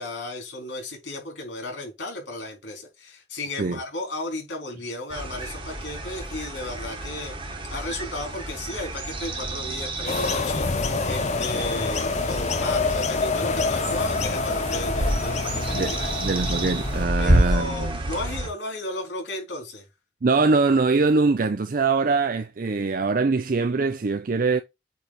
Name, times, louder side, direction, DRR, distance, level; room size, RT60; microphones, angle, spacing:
voice 1, 0.0-7.3 7.7-16.1 17.2-19.8, left 2 dB, 80° left, 4.0 m, -34 dB
sound 1, 5.1-18.5, right 1 dB, 30° right, 1.7 m, -29 dB
sound 2, 10.1-17.0, left 4 dB, 40° left, 0.7 m, -27 dB
voice 2, 16.2-18.0 20.2-24.6, right 4 dB, 50° right, 0.5 m, -23 dB
8.3 x 3.4 x 4.2 m
head